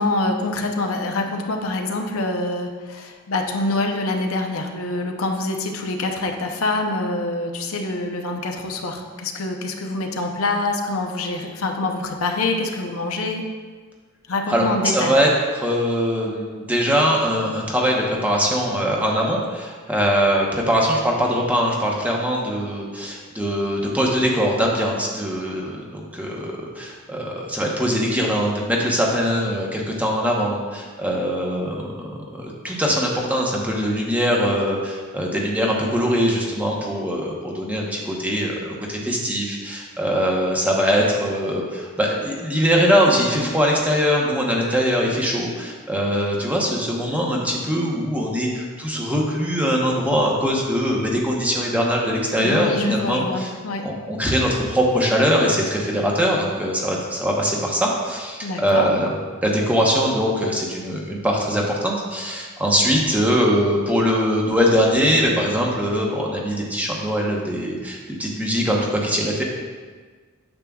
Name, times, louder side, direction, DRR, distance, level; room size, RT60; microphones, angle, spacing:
voice 1, 0.0-13.4 14.3-15.2 52.4-53.8 58.4-58.9, left 2 dB, 75° left, 3 dB, 0.7 m, -25 dB
voice 2, 14.5-15.3 15.5-53.5 53.8-59.1 59.4-69.4, equal, 5° right, -2 dB, 1.0 m, -22 dB
8.8 x 7.4 x 2.4 m, 1.5 s
head